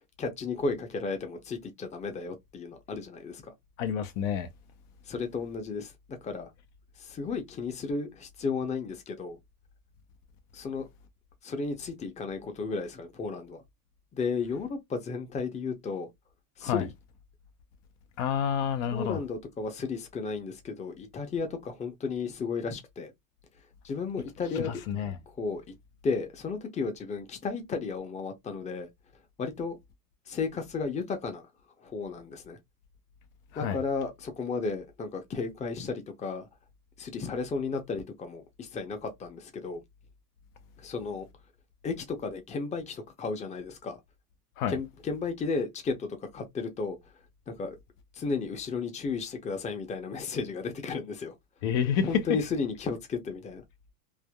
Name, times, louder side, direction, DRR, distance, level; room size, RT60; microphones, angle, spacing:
voice 1, 0.2-3.5 5.1-6.5 7.0-9.4 10.5-10.9 11.4-13.6 14.1-16.1 16.6-16.9 18.9-23.1 23.8-24.8 25.3-25.7 26.0-28.9 29.4-29.8 30.3-31.4 31.8-32.6 33.6-36.5 37.0-39.8 40.8-41.3 41.8-44.0 44.7-47.0 47.5-47.8 48.1-51.3 52.0-53.6, left 4 dB, 15° left, 0.6 m, -34 dB
voice 2, 3.8-4.5 16.6-16.9 18.2-19.2 24.6-25.2 33.5-33.8 44.6-44.8 51.6-52.1, left 8 dB, 60° left, 0.7 m, -29 dB
3.4 x 2.1 x 2.2 m
hypercardioid pair, 110°, 46 cm